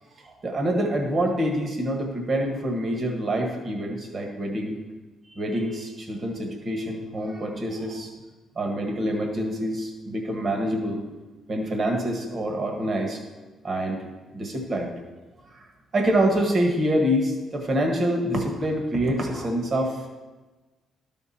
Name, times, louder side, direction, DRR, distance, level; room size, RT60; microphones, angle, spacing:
voice 1, 0.2-4.8 5.3-8.1 8.5-11.0 11.5-13.2 13.6-14.0 14.3-14.9 15.5-15.7 15.9-20.1, right 1 dB, 45° right, 3 dB, 1.6 m, -26 dB
12.0 x 5.9 x 4.3 m, 1.2 s
cardioid pair, 90°, 0 cm